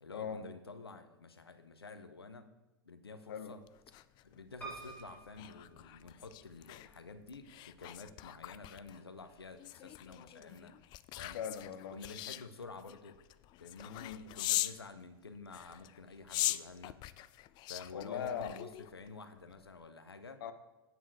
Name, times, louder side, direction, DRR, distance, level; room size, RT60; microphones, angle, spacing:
voice 1, 0.0-2.5 2.8-3.6 4.2-10.7 11.2-11.4 11.9-13.2 13.6-14.0 14.3-17.0 17.7-20.4, left 4 dB, 90° left, 10 dB, 0.9 m, -50 dB
sound 1, 3.7-14.8 15.5-19.1 19.5-19.7, left 16 dB, 35° left, 0.4 m, -42 dB
Piano, 4.6-6.6 7.2-7.9 8.2-8.3 8.5-8.6, right 4 dB, 10° left, 3.6 m, -50 dB
voice 2, 11.3-12.0 13.9-14.3 17.9-18.6 20.4-20.5, left 8 dB, 65° left, 10 dB, 1.0 m, -40 dB
9.2 x 7.9 x 4.7 m, 1.1 s
hypercardioid pair, 100°, 13 cm